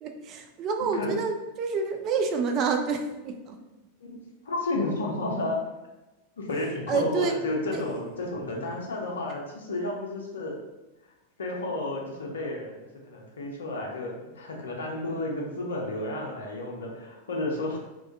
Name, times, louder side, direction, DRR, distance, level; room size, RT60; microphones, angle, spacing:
voice 1, 0.0-3.6 6.9-7.3 7.7-7.8, right 4 dB, 35° right, 4 dB, 0.3 m, -28 dB
voice 2, 4.4-5.7 6.4-10.5 11.4-17.8, left 2 dB, 65° left, -1 dB, 0.5 m, -32 dB
2.2 x 2.2 x 2.5 m, 1.0 s
figure-of-eight pair, 90°, 0 cm